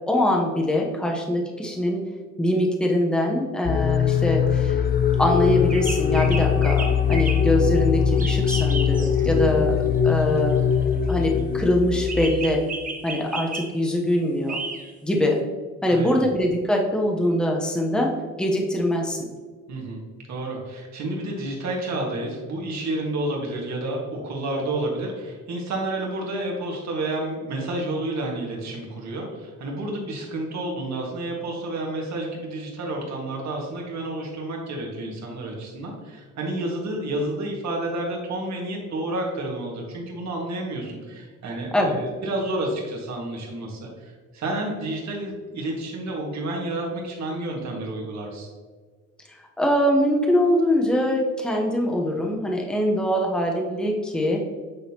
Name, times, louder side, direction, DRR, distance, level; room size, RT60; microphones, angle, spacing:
voice 1, 0.1-2.0 2.4-4.8 5.2-9.8 10.0-10.6 11.1-12.6 13.0-14.6 15.0-15.4 15.8-19.3 41.7-42.0 49.3-54.4, left 1 dB, 5° left, 0 dB, 0.9 m, -23 dB
sound 1, 3.6-12.3, left 7 dB, 35° left, 0.4 m, -21 dB
sound 2, 5.7-7.5 8.2-9.3 10.2-11.3 12.1-13.7 14.5-14.9, right 3 dB, 25° right, 1.0 m, -33 dB
voice 2, 9.2-9.6 15.9-16.3 19.7-20.0 20.3-48.5, right 1 dB, 65° right, -1 dB, 1.8 m, -30 dB
8.7 x 3.9 x 2.9 m, 1.5 s
cardioid pair, 90°, 30 cm